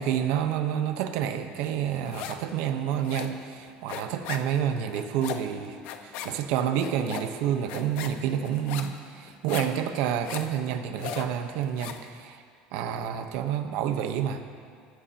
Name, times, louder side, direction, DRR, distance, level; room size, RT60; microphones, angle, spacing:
voice 1, 0.0-12.4 12.7-14.4, right 9 dB, 75° right, 6 dB, 1.0 m, -29 dB
sound 1, 1.6-2.5 2.8-12.1, left 8 dB, 70° left, 1.1 m, -39 dB
25.5 x 15.5 x 2.9 m, 2.2 s
cardioid pair, 135°, 3 cm